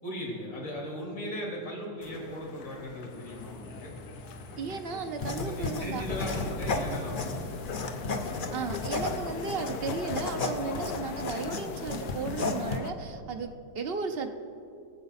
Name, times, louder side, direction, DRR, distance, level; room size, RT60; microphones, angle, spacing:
voice 1, 0.0-3.9 5.4-7.4, equal, 85° left, -3 dB, 4.0 m, -38 dB
sound 1, 2.0-12.9, left 7 dB, 65° left, 1.1 m, -41 dB
sound 2, 3.1-9.3, left 1 dB, 20° left, 2.5 m, -48 dB
voice 2, 4.6-6.0 8.5-14.3, right 5 dB, 70° right, 5 dB, 0.5 m, -35 dB
sound 3, 5.2-12.8, left 3 dB, 50° left, 0.6 m, -34 dB
23.5 x 7.9 x 4.1 m, 2.6 s
omnidirectional pair, 1.9 m